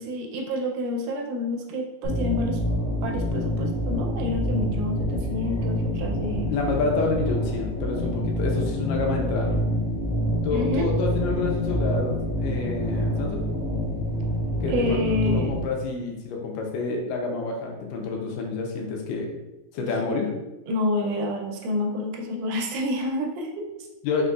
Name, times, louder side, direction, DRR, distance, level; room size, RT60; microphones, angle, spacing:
voice 1, 0.0-2.6 3.0-6.5 10.5-10.9 14.7-15.5 20.7-23.9, left 1 dB, 80° right, 1 dB, 2.0 m, -28 dB
sound 1, 2.0-15.6, equal, 65° left, 2.2 m, -27 dB
voice 2, 6.5-9.6 10.4-13.5 14.6-15.0 15.2-19.3 19.7-20.3 24.0-24.3, left 3 dB, 85° left, 1 dB, 2.3 m, -28 dB
5.1 x 3.9 x 2.3 m, 0.99 s
omnidirectional pair, 3.8 m